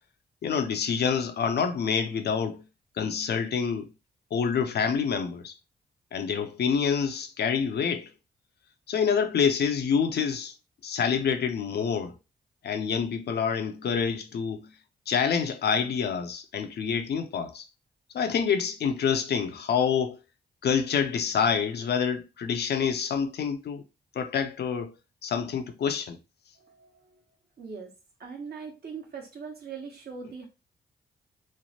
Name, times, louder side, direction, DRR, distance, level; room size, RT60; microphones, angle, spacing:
voice 1, 0.4-2.6 3.0-3.9 4.3-5.5 6.1-8.1 8.9-10.5 10.8-12.1 12.6-14.7 15.1-17.6 18.1-20.2 20.6-23.8 24.1-24.9 25.2-26.2, left 6 dB, 60° left, 0.5 m, -27 dB
voice 2, 26.6-27.2 27.6-27.9 28.2-30.5, right 5 dB, 55° right, 1.1 m, -41 dB
3.1 x 2.1 x 2.7 m
supercardioid pair, 45°, 19 cm